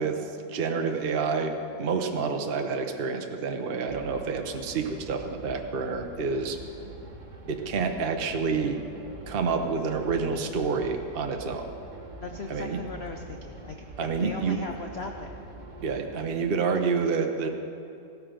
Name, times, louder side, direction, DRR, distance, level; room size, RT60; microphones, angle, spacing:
voice 1, 0.0-1.5 1.8-6.6 7.5-8.8 9.3-11.7 12.5-12.8 14.0-14.6 15.8-17.5, right 5 dB, 55° right, 4 dB, 0.6 m, -28 dB
sound 1, 3.9-16.2, right 2 dB, 30° right, 1.1 m, -44 dB
voice 2, 12.2-15.4, left 3 dB, 85° left, 3 dB, 0.5 m, -38 dB
15.5 x 13.0 x 5.1 m, 2.7 s
omnidirectional pair, 2.1 m